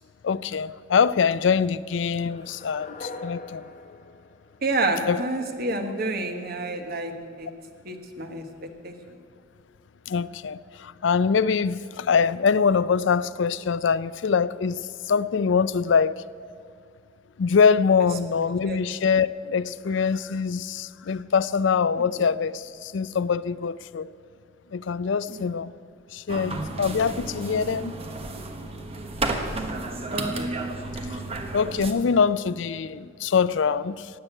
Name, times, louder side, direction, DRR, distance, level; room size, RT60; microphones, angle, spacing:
voice 1, 0.2-3.6 5.1-5.2 10.1-16.2 17.4-24.1 24.7-25.7 26.1-28.0 31.5-34.1, left 6 dB, 70° left, 0.4 m, -24 dB
sound 1, 2.1-5.2, left 2 dB, 40° left, 1.0 m, -42 dB
voice 2, 4.6-7.1 7.4-7.5 7.8-8.9 18.4-18.8 22.0-22.2 25.3-25.4 30.1-30.5, right 2 dB, 50° right, 1.5 m, -29 dB
sound 2, 26.3-31.9, right 2 dB, 30° right, 1.3 m, -32 dB
16.0 x 8.8 x 9.2 m
head